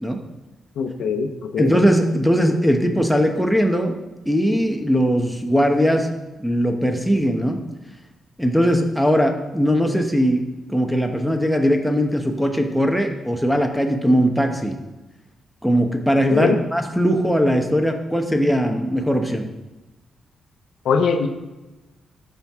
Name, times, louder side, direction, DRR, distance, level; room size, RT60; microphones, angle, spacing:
voice 1, 0.8-1.7 16.3-16.6 20.8-21.3, left 5 dB, 85° left, 6 dB, 0.7 m, -21 dB
voice 2, 1.6-3.9 4.3-6.1 6.4-7.6 8.4-14.8 15.6-19.5, equal, ahead, 3 dB, 0.9 m, -20 dB
13.0 x 4.5 x 3.6 m, 1.1 s
cardioid pair, 95°, 0 cm